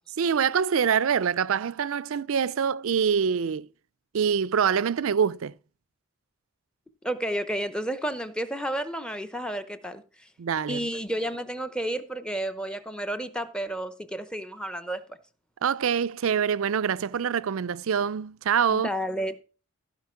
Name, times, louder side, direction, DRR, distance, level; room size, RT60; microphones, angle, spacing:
voice 1, 0.2-3.7 4.1-5.6 10.4-10.9 15.6-18.9, right 7 dB, 70° right, 0.4 m, -25 dB
voice 2, 7.0-10.3 10.7-15.0 18.7-19.4, right 1 dB, 5° left, 0.8 m, -31 dB
15.0 x 5.0 x 5.8 m
head